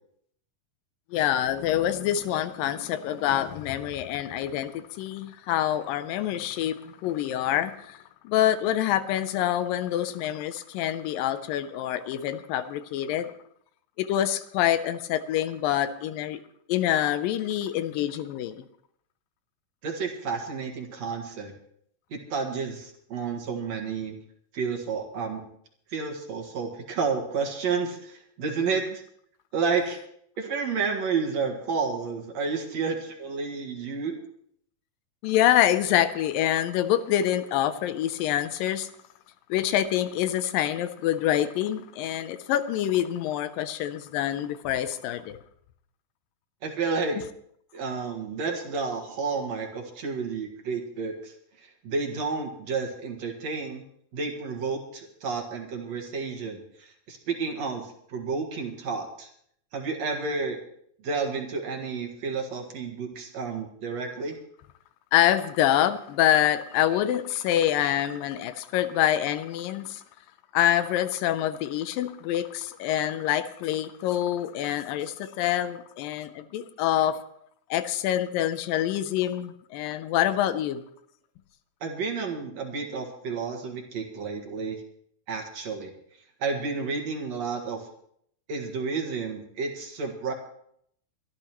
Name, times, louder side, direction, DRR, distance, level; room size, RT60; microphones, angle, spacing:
voice 1, 1.1-8.0 8.2-13.3 14.0-16.4 16.7-18.6 28.6-28.7 35.2-38.9 39.5-45.4 65.1-70.0 70.5-77.2 77.7-80.8, left 11 dB, 80° left, 12 dB, 2.4 m, -26 dB
voice 2, 19.8-21.5 22.1-24.1 24.5-25.4 25.9-29.0 29.5-30.0 30.4-34.2 46.6-47.2 47.7-53.8 54.1-59.3 59.7-60.6 61.0-64.3 81.8-84.8 85.3-85.9 86.4-87.9 88.5-90.3, right 5 dB, 55° right, 2 dB, 2.6 m, -31 dB
23.5 x 12.5 x 3.0 m, 0.67 s
omnidirectional pair, 4.0 m